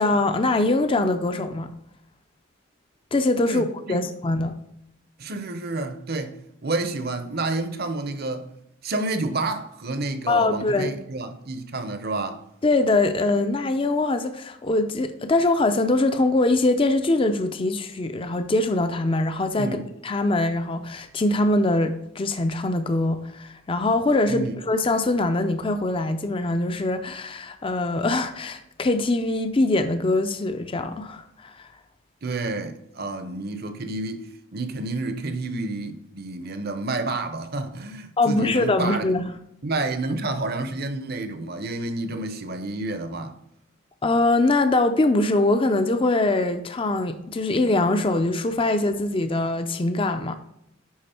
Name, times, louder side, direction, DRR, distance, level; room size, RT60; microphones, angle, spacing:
voice 1, 0.0-1.7 3.1-4.5 10.3-10.9 12.6-19.8 20.0-31.7 38.2-39.3 44.0-50.3, left 2 dB, 25° left, 0.4 m, -23 dB
voice 2, 3.5-4.0 5.2-6.4 6.6-8.5 8.8-12.4 19.6-19.9 24.3-24.6 32.2-39.1 39.6-43.4, right 2 dB, 50° right, 0.7 m, -29 dB
10.5 x 4.1 x 4.3 m
head